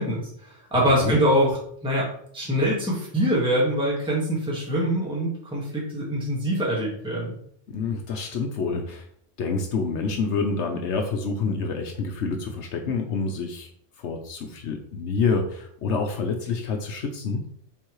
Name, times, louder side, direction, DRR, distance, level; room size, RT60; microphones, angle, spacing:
voice 1, 0.0-1.6 1.8-2.1 2.3-7.3, equal, 5° right, -6 dB, 1.7 m, -24 dB
voice 2, 0.7-1.2 7.7-9.1 9.4-13.7 14.0-17.4, left 4 dB, 80° left, 3 dB, 1.1 m, -27 dB
8.1 x 4.0 x 3.1 m, 0.65 s
omnidirectional pair, 1.2 m